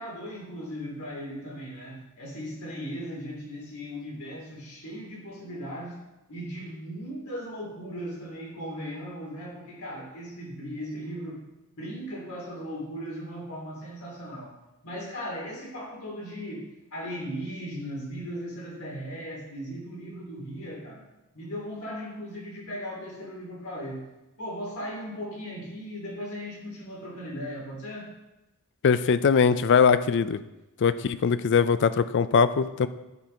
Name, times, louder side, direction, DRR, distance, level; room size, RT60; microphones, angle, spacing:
voice 1, 0.0-6.0 6.3-11.4 11.8-14.5 14.8-21.0 21.3-24.1 24.4-28.1, equal, 85° left, -3 dB, 2.9 m, -37 dB
voice 2, 28.8-30.4 30.8-32.9, left 6 dB, 55° left, 14 dB, 0.4 m, -21 dB
9.8 x 4.4 x 5.2 m, 1.0 s
head